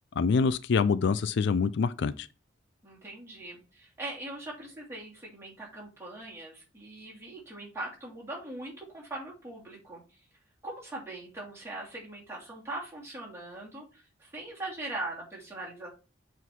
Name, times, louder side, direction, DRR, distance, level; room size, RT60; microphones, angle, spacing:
voice 1, 0.2-2.3, left 5 dB, 65° left, 0.4 m, -25 dB
voice 2, 2.8-10.2 10.6-15.9, right 2 dB, 15° right, 2.8 m, -41 dB
8.0 x 3.9 x 4.5 m
head